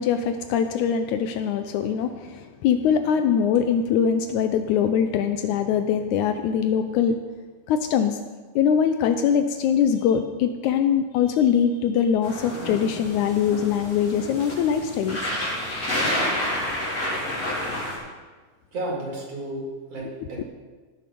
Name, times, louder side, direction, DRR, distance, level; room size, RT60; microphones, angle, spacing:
voice 1, 0.0-7.2 7.7-8.2 8.6-15.2 20.4-20.5, left 8 dB, 80° left, 8 dB, 1.9 m, -22 dB
sound 1, 12.2-18.0, left 1 dB, 50° left, 5.5 m, -29 dB
voice 2, 18.7-20.4, right 1 dB, 50° right, -3 dB, 3.5 m, -32 dB
17.5 x 6.7 x 5.2 m, 1.4 s
omnidirectional pair, 3.7 m